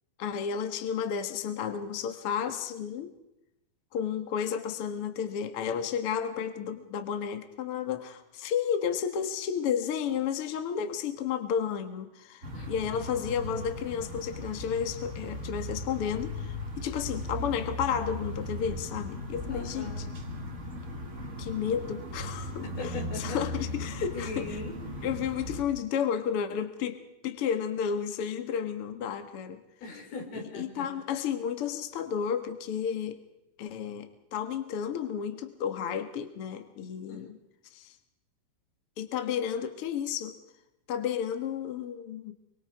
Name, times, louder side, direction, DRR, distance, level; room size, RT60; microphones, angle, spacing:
voice 1, 0.2-3.1 3.9-19.9 21.4-22.6 23.2-24.5 25.0-29.6 30.5-33.2 33.6-37.3 37.7-37.9 39.0-40.4 40.9-42.3, left 8 dB, 50° left, 7 dB, 1.9 m, -32 dB
sound 1, 12.4-25.6, left 1 dB, 30° right, 1.6 m, -38 dB
voice 2, 19.5-20.1 22.6-23.6 24.1-25.1 29.8-30.9 37.1-37.3, left 3 dB, 80° left, 2 dB, 6.2 m, -40 dB
26.0 x 24.0 x 4.8 m, 0.89 s
omnidirectional pair, 4.3 m